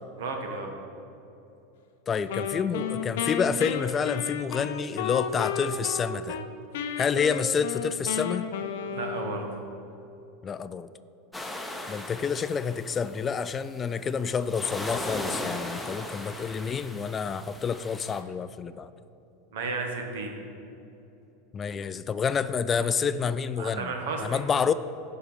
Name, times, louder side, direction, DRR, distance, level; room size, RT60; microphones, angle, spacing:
voice 1, 0.2-0.7 8.9-9.4 19.5-20.3 23.6-24.4, right 3 dB, 75° right, 3 dB, 1.3 m, -33 dB
voice 2, 2.1-6.4 7.0-8.4 10.4-10.9 11.9-18.9 21.5-23.9 24.2-24.7, left 6 dB, 30° left, 13 dB, 0.3 m, -28 dB
Wind instrument woodwind instrument, 2.3-6.5 6.7-9.7, left 7 dB, 70° left, 0.6 m, -33 dB
sound 1, 11.3-13.5 14.1-18.2, left 1 dB, 5° left, 0.9 m, -37 dB
11.0 x 4.8 x 5.5 m, 2.9 s
hypercardioid pair, 100°, 0 cm